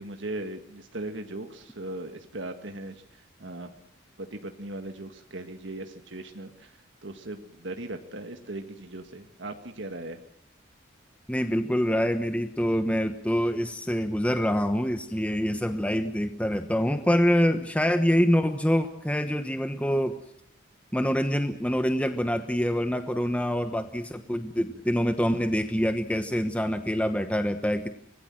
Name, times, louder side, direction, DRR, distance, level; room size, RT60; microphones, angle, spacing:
voice 1, 0.0-3.7 4.2-10.2, right 2 dB, 65° right, 6 dB, 1.7 m, -38 dB
voice 2, 11.3-20.2 20.9-27.9, equal, 5° left, 8 dB, 1.0 m, -25 dB
25.5 x 19.5 x 7.7 m, 0.70 s
head